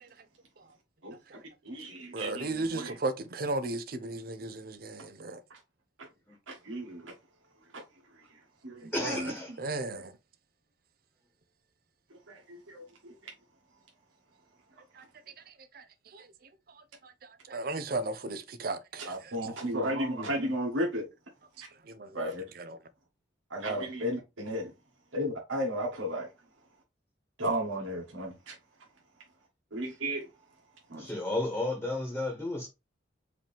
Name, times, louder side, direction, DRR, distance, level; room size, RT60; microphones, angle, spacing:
voice 1, 1.0-2.9 6.0-6.1 6.5-7.1 7.7-7.8 8.1-9.3 12.3-13.3 19.0-21.1 21.6-21.7 22.1-22.4 23.5-24.7 25.1-26.3 27.4-28.6 29.7-30.3 30.9-31.1, equal, 90° right, 1.5 m, -34 dB
voice 2, 2.1-5.4 9.0-9.2 9.6-10.1 14.9-15.1 15.5-16.3 16.7-19.3 21.8-22.8, right 2 dB, 50° right, 0.6 m, -36 dB
voice 3, 8.9-9.5 31.0-32.7, left 2 dB, 5° left, 1.3 m, -32 dB
4.9 x 3.0 x 3.4 m
head